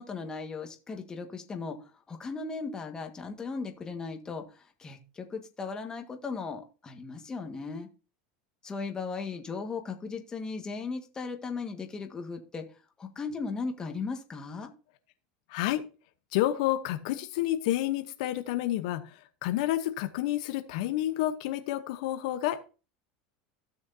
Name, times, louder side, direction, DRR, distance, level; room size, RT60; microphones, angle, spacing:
voice 1, 0.0-7.9 8.6-12.7 13.0-14.7, left 4 dB, 20° left, 4 dB, 1.6 m, -37 dB
voice 2, 15.5-15.8 16.3-22.7, left 14 dB, 70° left, 8 dB, 0.9 m, -29 dB
15.5 x 6.3 x 2.8 m, 0.33 s
supercardioid pair, 125°, 4 cm